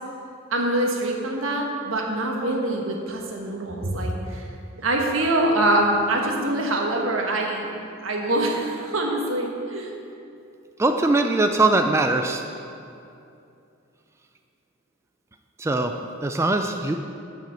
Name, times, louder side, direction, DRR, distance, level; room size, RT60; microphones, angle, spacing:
voice 1, 0.5-4.5 4.8-7.7 8.0-9.9, right 1 dB, 80° right, 0 dB, 1.4 m, -24 dB
voice 2, 10.8-12.4 15.6-17.0, right 2 dB, 15° right, 5 dB, 0.4 m, -21 dB
8.8 x 5.7 x 7.4 m, 2.6 s
head